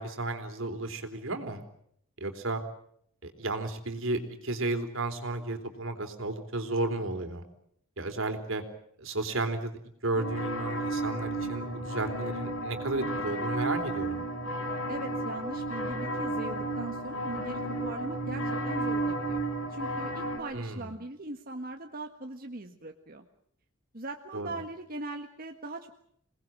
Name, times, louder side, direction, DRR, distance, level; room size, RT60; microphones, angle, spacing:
voice 1, 0.0-1.6 2.2-2.6 3.2-7.4 8.0-8.6 9.0-9.7 10.0-14.2 20.5-20.9 24.3-24.5, right 2 dB, 75° right, 7 dB, 3.8 m, -33 dB
sound 1, 10.1-20.4, right 1 dB, 80° left, 6.2 m, -33 dB
voice 2, 14.9-23.2 23.9-25.9, right 2 dB, 45° right, 4 dB, 1.7 m, -40 dB
28.0 x 19.5 x 7.7 m, 0.70 s
head